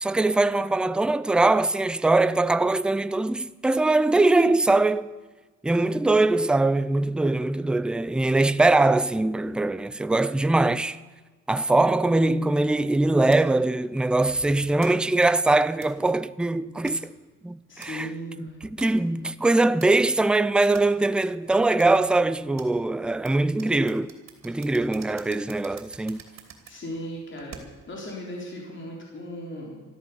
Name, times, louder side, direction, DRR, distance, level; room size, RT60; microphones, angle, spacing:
voice 1, 0.0-5.1 5.6-11.0 11.5-17.1 17.4-18.1 18.4-24.1 24.4-26.2, right 2 dB, 5° right, 0.4 m, -22 dB
sound 1, 13.3-28.0, right 6 dB, 60° right, 2.8 m, -50 dB
voice 2, 17.7-18.6 26.7-27.6 27.9-29.8, equal, 40° left, 3.8 m, -37 dB
13.5 x 13.0 x 7.0 m
cardioid pair, 120°, 31 cm